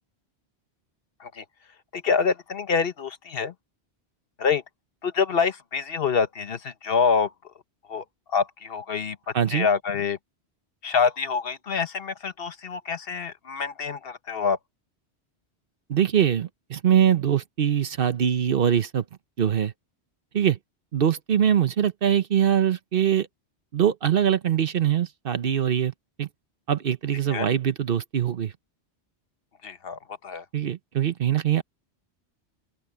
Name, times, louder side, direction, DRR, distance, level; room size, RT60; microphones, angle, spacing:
voice 1, 1.9-3.5 4.4-4.6 5.0-7.3 7.9-9.2 9.5-10.2 10.8-14.6 27.3-27.5 29.6-30.4, left 5 dB, 60° left, 1.2 m, -26 dB
voice 2, 9.3-9.7 15.9-19.0 19.4-19.7 20.3-20.6 20.9-23.3 23.7-25.9 26.2-26.3 26.7-28.5 30.5-31.6, right 9 dB, 60° right, 0.9 m, -23 dB
open air
omnidirectional pair, 1.1 m